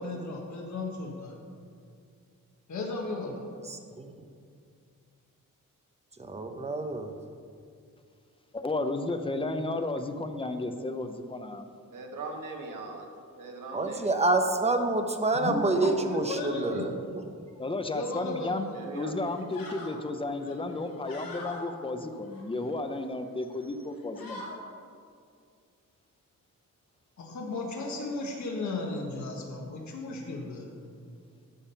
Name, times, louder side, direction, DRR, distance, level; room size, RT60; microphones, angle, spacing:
voice 1, 0.0-1.4 2.7-3.4 15.3-16.9 17.9-18.8 27.2-30.7, left 2 dB, 60° left, -1 dB, 1.4 m, -35 dB
voice 2, 6.3-7.1 13.7-17.2, right 2 dB, 20° right, 6 dB, 0.7 m, -27 dB
voice 3, 8.5-11.7 17.6-18.7 18.9-24.4, left 2 dB, 15° left, 7 dB, 0.6 m, -33 dB
voice 4, 11.9-13.1 13.3-14.2 18.6-19.1, right 2 dB, 70° right, 1 dB, 1.6 m, -40 dB
sound 1, 18.5-18.8 19.2-19.9 20.4-21.6 22.2-23.1 23.5-23.7 23.9-24.6, left 2 dB, 85° left, 2.6 m, -44 dB
12.0 x 7.3 x 5.6 m, 2.3 s
wide cardioid pair, 175°, 33 cm